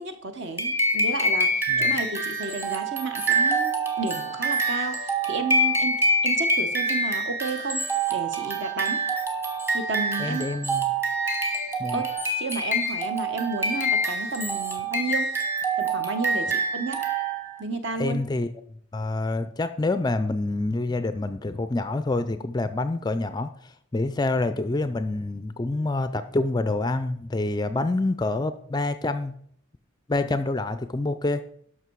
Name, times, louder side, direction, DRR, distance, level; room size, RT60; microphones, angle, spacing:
voice 1, 0.0-1.5 1.8-7.8 8.1-9.0 9.7-10.4 11.9-15.3 15.8-17.0 17.6-18.2, right 3 dB, 55° right, 7 dB, 1.2 m, -32 dB
sound 1, 0.6-17.6, right 2 dB, 10° right, 1.2 m, -26 dB
voice 2, 10.2-10.9 11.8-12.0 18.0-18.5 18.9-29.3 30.1-31.4, left 2 dB, 20° left, 11 dB, 0.4 m, -27 dB
12.5 x 5.8 x 4.7 m, 0.63 s
head